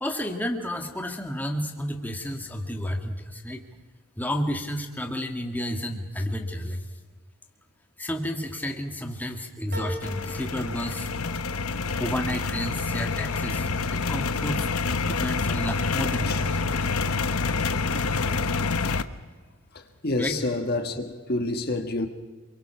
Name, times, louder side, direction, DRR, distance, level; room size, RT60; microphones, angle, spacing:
voice 1, 0.0-3.6 4.2-6.8 8.0-11.1 12.0-14.7 15.0-16.6 20.2-20.4, equal, 10° left, 1.8 m, -31 dB
sound 1, 9.7-14.5 15.0-15.7 16.0-16.1, left 1 dB, 45° right, 4.6 m, -44 dB
sound 2, 10.0-19.0, left 4 dB, 80° left, 1.0 m, -27 dB
voice 2, 19.7-22.1, left 2 dB, 45° left, 1.4 m, -28 dB
28.0 x 23.0 x 5.8 m
head